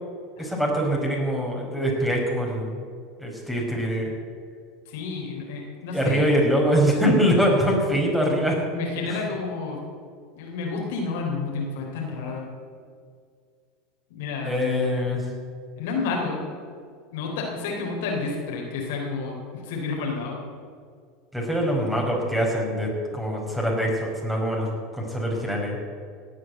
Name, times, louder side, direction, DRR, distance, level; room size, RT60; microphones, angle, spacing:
voice 1, 0.4-2.8 3.2-4.1 5.9-8.6 9.1-9.2 14.5-15.2 21.3-24.7 25.0-25.8, equal, 5° right, -1 dB, 5.2 m, -23 dB
voice 2, 4.9-6.2 8.7-9.8 10.4-12.4 14.1-14.5 15.8-16.4 17.1-20.4, left 4 dB, 65° left, 0 dB, 3.5 m, -30 dB
17.5 x 8.9 x 7.9 m, 2.1 s
figure-of-eight pair, 80°, 0 cm